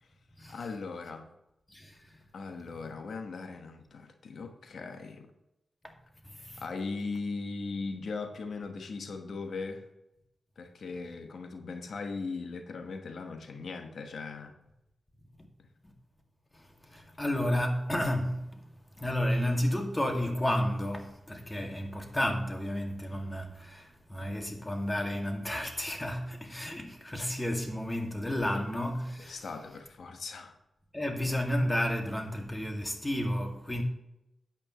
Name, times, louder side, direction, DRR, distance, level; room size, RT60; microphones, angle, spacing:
voice 1, 0.5-1.3 2.3-5.3 6.6-9.8 10.6-14.6 28.5-28.7 29.2-30.6, left 4 dB, 75° left, 1.2 m, -39 dB
voice 2, 1.7-2.2 6.2-6.6 15.8-15.9 16.5-18.7 19.0-29.4 30.9-33.8, equal, 20° left, 2.1 m, -32 dB
13.0 x 8.7 x 3.1 m
cardioid pair, 60°, 0 cm